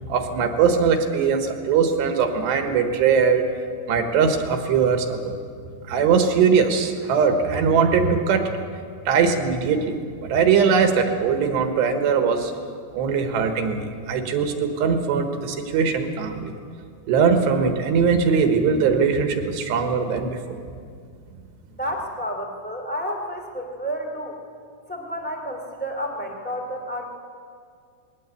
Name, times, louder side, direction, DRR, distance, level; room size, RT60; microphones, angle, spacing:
voice 1, 0.1-3.4 3.9-5.4 5.9-8.5 9.1-10.0 10.2-12.5 12.9-16.5 17.1-20.6, right 6 dB, 80° right, 5 dB, 3.7 m, -21 dB
voice 2, 21.8-24.4 24.9-27.1, equal, 5° left, 1 dB, 1.0 m, -30 dB
21.0 x 18.0 x 8.5 m, 2.2 s
omnidirectional pair, 5.1 m